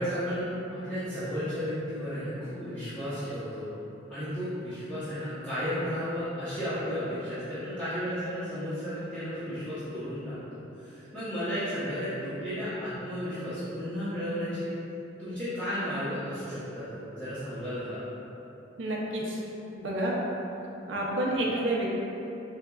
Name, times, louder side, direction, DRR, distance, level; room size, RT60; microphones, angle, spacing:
voice 1, 0.0-3.7 4.1-14.7 15.2-18.0, equal, 10° left, -16 dB, 1.0 m, -33 dB
voice 2, 18.8-19.4 19.7-20.1 20.9-22.0, right 1 dB, 85° right, -3 dB, 0.6 m, -29 dB
4.7 x 3.5 x 2.3 m, 3.0 s
head